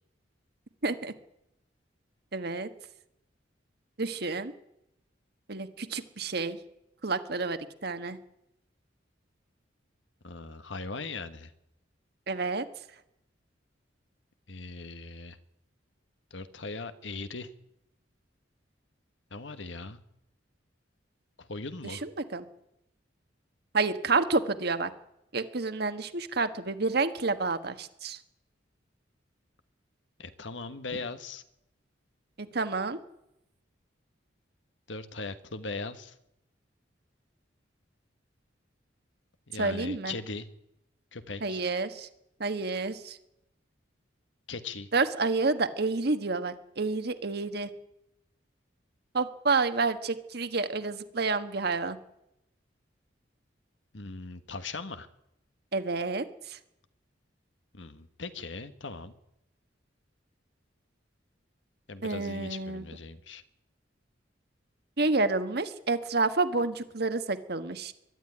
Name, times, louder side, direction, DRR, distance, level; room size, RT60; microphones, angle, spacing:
voice 1, 0.8-1.1 2.3-2.7 4.0-4.5 5.5-6.6 7.0-8.2 12.3-12.6 22.0-22.4 23.7-24.9 25.3-28.2 32.4-33.0 39.6-40.1 41.4-42.1 42.4-43.2 44.9-47.7 49.1-52.0 55.7-56.6 62.0-62.8 65.0-67.9, right 3 dB, 60° right, 9 dB, 1.5 m, -29 dB
voice 2, 10.2-11.5 14.5-15.4 16.3-17.5 19.3-20.0 21.4-22.0 30.2-31.4 34.9-36.1 39.5-40.5 41.1-41.6 44.5-44.9 53.9-55.1 57.7-59.1 61.9-63.4, left 3 dB, 75° left, 11 dB, 1.4 m, -39 dB
22.0 x 12.0 x 9.8 m, 0.86 s
head